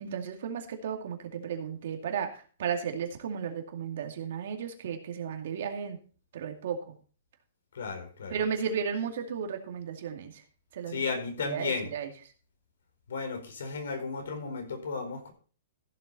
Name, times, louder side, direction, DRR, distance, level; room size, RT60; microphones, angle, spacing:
voice 1, 0.0-6.0 6.3-6.9 8.3-10.3 10.7-11.0 11.4-12.1, right 7 dB, 50° right, 4 dB, 2.3 m, -34 dB
voice 2, 7.7-8.4 10.9-11.9 13.1-15.3, left 4 dB, 80° left, 5 dB, 4.6 m, -34 dB
15.0 x 7.6 x 4.1 m, 0.39 s
hypercardioid pair, 175°, 0 cm